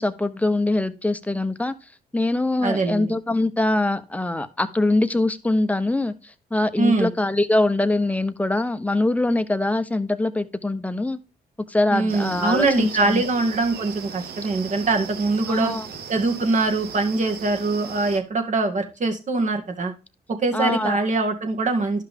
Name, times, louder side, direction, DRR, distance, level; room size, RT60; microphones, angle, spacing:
voice 1, 0.0-1.7 2.1-11.2 11.7-13.2 15.5-15.9 20.5-21.0, left 2 dB, 10° left, 0.9 m, -23 dB
voice 2, 2.6-3.1 6.8-7.1 11.9-15.7 16.1-19.9 20.3-22.0, right 3 dB, 50° right, 2.1 m, -23 dB
sound 1, 12.1-18.2, right 7 dB, 75° right, 1.0 m, -38 dB
11.5 x 5.7 x 3.7 m
cardioid pair, 85°, 16 cm